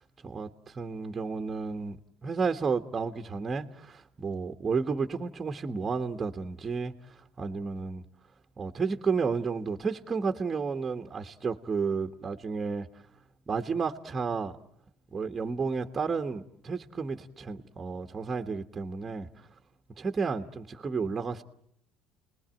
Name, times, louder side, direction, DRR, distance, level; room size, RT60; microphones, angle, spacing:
voice 1, 0.2-2.0 2.2-6.9 7.4-8.0 8.6-12.9 13.5-14.6 15.1-19.3 20.0-21.4, right 5 dB, 25° right, 1.4 m, -32 dB
30.0 x 20.0 x 9.1 m
supercardioid pair, 100°, 0 cm